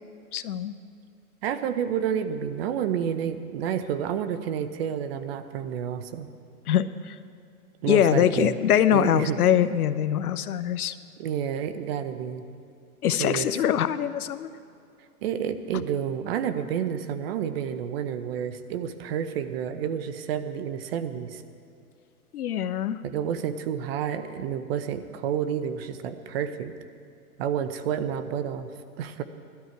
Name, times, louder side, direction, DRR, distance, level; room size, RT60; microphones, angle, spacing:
voice 1, 0.3-0.7 6.7-7.2 7.9-11.0 13.0-14.5 15.7-15.8 22.3-23.0, left 10 dB, 75° left, 13 dB, 0.8 m, -23 dB
voice 2, 1.4-6.3 7.8-8.5 8.9-9.4 11.2-12.4 13.2-13.5 15.2-21.4 23.0-26.7 27.4-28.7 29.0-29.2, right 8 dB, 40° right, 10 dB, 0.9 m, -29 dB
17.0 x 12.5 x 4.6 m, 2.5 s
hypercardioid pair, 135°, 44 cm